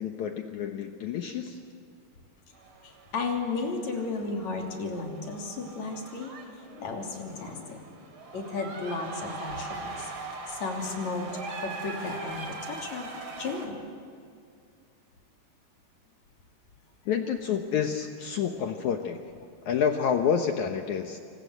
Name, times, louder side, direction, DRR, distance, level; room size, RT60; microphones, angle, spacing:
voice 1, 0.0-1.6 17.0-19.2 19.6-21.2, left 7 dB, 80° left, 5 dB, 1.7 m, -28 dB
sound 1, 2.6-13.7, right 3 dB, 35° right, 2.9 m, -41 dB
voice 2, 2.8-6.3 6.6-8.0 8.3-10.1 10.5-13.1 13.4-13.8, left 3 dB, 45° left, 2 dB, 3.9 m, -34 dB
27.5 x 26.0 x 8.0 m, 2.4 s
omnidirectional pair, 4.9 m